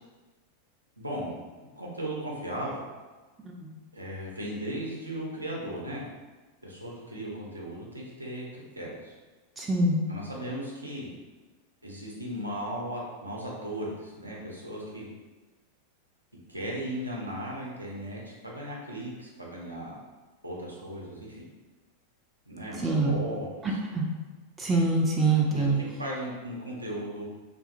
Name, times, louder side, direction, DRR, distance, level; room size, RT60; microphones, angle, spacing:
voice 1, 1.0-2.8 3.9-6.1 6.6-9.1 10.1-11.1 11.8-15.1 16.5-20.0 20.4-21.4 22.5-23.7 25.5-27.2, right 1 dB, 85° right, -4 dB, 0.6 m, -37 dB
voice 2, 9.6-10.0 22.8-23.2 23.6-24.0 24.6-25.8, right 2 dB, 15° right, -2 dB, 0.5 m, -25 dB
2.6 x 2.5 x 2.4 m, 1.3 s
figure-of-eight pair, 90°, 0 cm